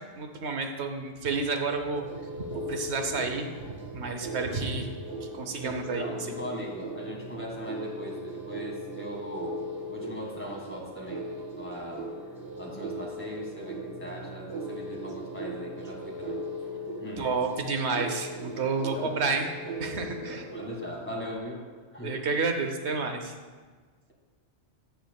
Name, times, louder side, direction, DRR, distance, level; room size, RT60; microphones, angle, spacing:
voice 1, 0.0-2.1 2.4-4.9 5.2-6.0 17.2-19.5 19.8-20.4 22.0-23.3, right 4 dB, 70° right, 5 dB, 1.2 m, -30 dB
sound 1, 1.9-21.4, equal, 25° right, 0.8 m, -38 dB
voice 2, 5.6-9.5 9.9-11.3 11.6-12.1 12.6-16.4 17.0-17.3 18.9-19.1 20.2-21.6 21.9-22.1, equal, 10° left, -2 dB, 1.8 m, -39 dB
12.5 x 8.6 x 2.3 m, 1.5 s
omnidirectional pair, 1.2 m